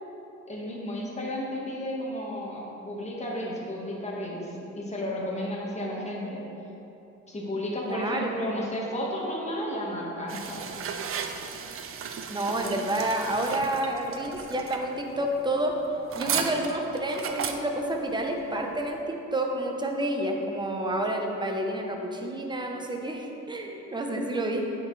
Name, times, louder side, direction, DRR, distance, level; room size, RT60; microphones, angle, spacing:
voice 1, 0.5-6.4 7.3-10.6, left 1 dB, 20° left, -4 dB, 1.5 m, -33 dB
voice 2, 7.8-8.3 12.3-15.7 16.2-24.7, right 1 dB, 15° right, 1 dB, 0.8 m, -29 dB
sound 1, 10.3-19.0, right 7 dB, 45° right, 0.5 m, -36 dB
9.3 x 4.5 x 3.2 m, 2.9 s
cardioid pair, 90°, 30 cm